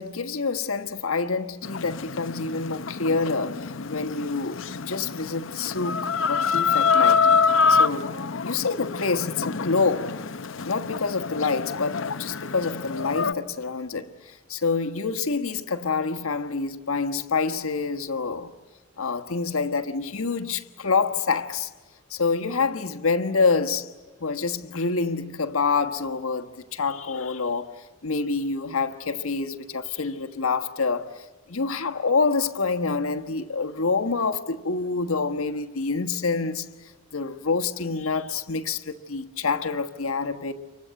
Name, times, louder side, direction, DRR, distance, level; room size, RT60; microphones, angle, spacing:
voice 1, 0.0-8.1 8.4-10.2 10.6-18.5 19.0-21.7 22.1-23.9 24.2-27.7 28.0-31.1 31.5-36.7 37.1-40.5, left 4 dB, 80° left, 1.4 m, -27 dB
Chicken rooster, 1.6-13.3, left 5 dB, 65° left, 0.8 m, -26 dB
29.0 x 24.5 x 7.7 m
head